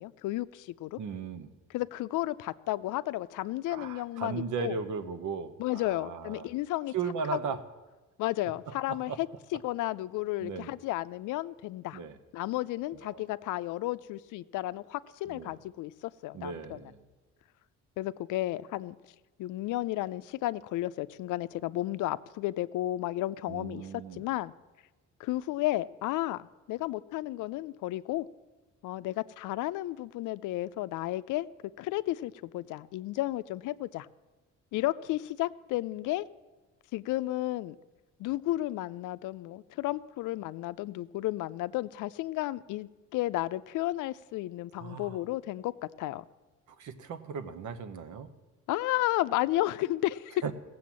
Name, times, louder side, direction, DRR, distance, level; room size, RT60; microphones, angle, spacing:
voice 1, 0.0-1.0 1.7-4.8 5.6-6.9 8.2-9.3 9.5-12.0 12.3-15.9 16.2-16.8 18.0-19.0 19.4-23.9 24.1-24.5 25.2-28.3 28.8-31.5 31.8-34.1 34.7-36.3 36.9-37.8 38.2-45.7 46.0-46.2 48.7-50.4, left 16 dB, 85° left, 15 dB, 0.5 m, -33 dB
voice 2, 0.9-1.5 3.7-6.5 6.9-7.6 8.7-9.2 10.4-10.7 11.9-12.2 13.0-13.2 15.3-15.5 16.3-17.0 23.5-24.3 44.7-45.2 46.7-48.3 50.4-50.5, right 5 dB, 75° right, 10 dB, 1.1 m, -37 dB
16.0 x 7.7 x 7.4 m, 1.2 s
cardioid pair, 90°, 30 cm